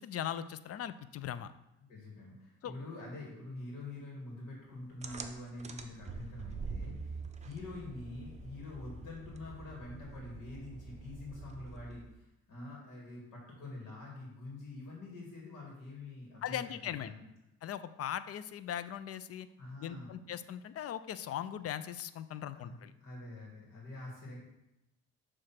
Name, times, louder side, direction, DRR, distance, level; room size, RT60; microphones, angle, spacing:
voice 1, 0.0-1.5 2.6-2.7 16.4-17.1 17.6-19.5 19.8-22.9, left 10 dB, 50° left, 14 dB, 0.4 m, -39 dB
voice 2, 1.9-16.6 16.9-17.2 19.6-20.2 22.5-24.4, left 2 dB, 80° left, -3 dB, 2.3 m, -46 dB
sound 1, 5.0-12.2, right 4 dB, 25° right, 0.6 m, -45 dB
6.5 x 3.2 x 5.8 m, 0.92 s
cardioid pair, 90°, 30 cm